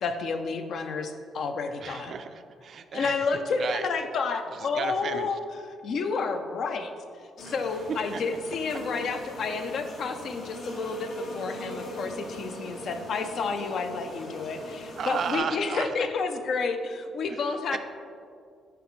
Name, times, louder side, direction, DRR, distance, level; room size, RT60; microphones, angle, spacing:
voice 1, 0.0-2.1 2.9-5.4 5.8-6.9 7.4-17.8, left 4 dB, 65° left, 7 dB, 0.5 m, -30 dB
voice 2, 1.8-3.3 3.6-3.9 4.5-5.4 7.4-7.5 7.9-8.2 15.0-16.1 17.3-17.4 17.7-17.8, right 6 dB, 55° right, 9 dB, 0.3 m, -34 dB
sound 1, 7.4-15.4, equal, 80° left, 1.3 m, -40 dB
6.8 x 4.9 x 3.1 m, 2.2 s
cardioid pair, 90°, 0 cm